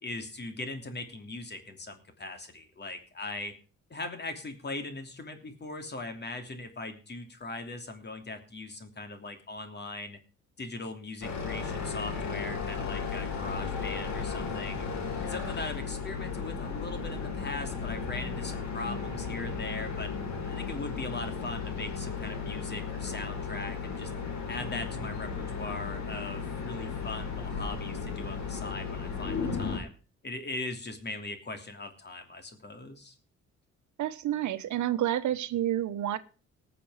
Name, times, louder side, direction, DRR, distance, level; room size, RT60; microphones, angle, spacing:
voice 1, 0.0-3.5 3.9-10.2 10.6-14.8 15.2-20.1 20.5-24.1 24.5-29.9 30.2-33.2, left 2 dB, 35° left, 7 dB, 3.0 m, -40 dB
sound 1, 11.2-29.8, left 5 dB, 65° left, 4.6 m, -35 dB
voice 2, 34.0-36.2, right 12 dB, 75° right, 11 dB, 1.1 m, -29 dB
19.0 x 7.1 x 4.9 m, 0.35 s
cardioid pair, 90°, 30 cm